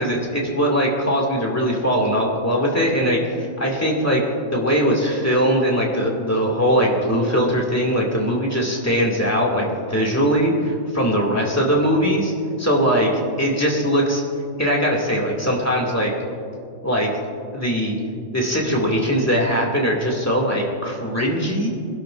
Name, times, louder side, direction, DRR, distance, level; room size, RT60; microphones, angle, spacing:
voice 1, 0.0-4.2 4.5-12.3 12.6-14.2 14.6-16.1 16.8-17.1 17.5-18.0 18.3-21.7, equal, 10° left, -3 dB, 2.3 m, -20 dB
25.0 x 11.5 x 2.6 m, 2.4 s
omnidirectional pair, 1.5 m